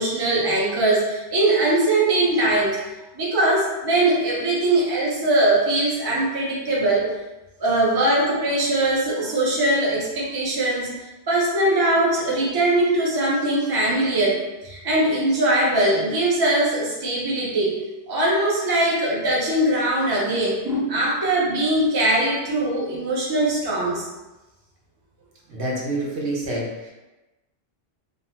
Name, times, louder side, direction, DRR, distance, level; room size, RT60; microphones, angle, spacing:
voice 1, 0.0-2.8 3.1-7.1 7.6-10.9 11.3-17.8 18.1-24.1, right 1 dB, 35° right, -5 dB, 0.4 m, -21 dB
voice 2, 25.5-26.9, right 1 dB, 65° right, -3 dB, 0.9 m, -27 dB
2.4 x 2.3 x 2.8 m, 1.0 s
omnidirectional pair, 1.2 m